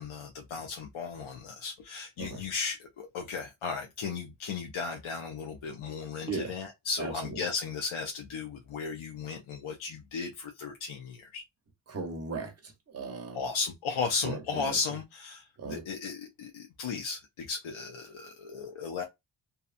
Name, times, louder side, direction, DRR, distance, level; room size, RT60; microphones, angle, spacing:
voice 1, 0.0-11.4 13.3-19.0, left 5 dB, 75° left, 0.6 m, -35 dB
voice 2, 7.0-7.4 11.9-13.5 14.2-14.8 15.6-15.8, right 4 dB, 30° right, 0.7 m, -37 dB
2.7 x 2.3 x 2.4 m
wide cardioid pair, 170°, 49 cm